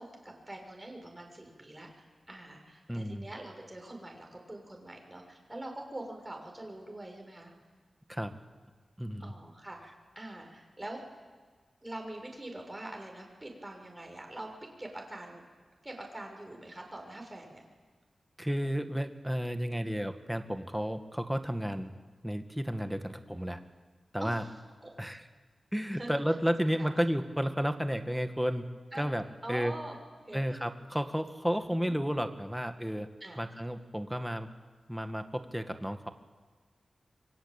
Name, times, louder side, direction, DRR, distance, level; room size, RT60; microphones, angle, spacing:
voice 1, 0.0-7.5 9.2-11.0 11.8-15.4 15.8-17.6 19.8-20.0 24.2-24.6 24.8-24.9 25.9-26.1 26.6-26.9 28.9-29.1 29.4-30.0 30.3-30.4 31.6-32.0 33.2-33.4, right 1 dB, 20° right, 2 dB, 6.6 m, -44 dB
voice 2, 2.9-3.2 8.1-8.3 9.0-9.3 18.4-21.9 22.2-23.6 24.1-24.4 25.0-25.2 25.7-28.6 28.9-29.2 29.5-29.7 30.3-33.1 33.4-34.5 34.9-36.1, equal, 5° right, 7 dB, 1.9 m, -32 dB
27.0 x 24.5 x 9.0 m, 1.5 s
wide cardioid pair, 80°, 0 cm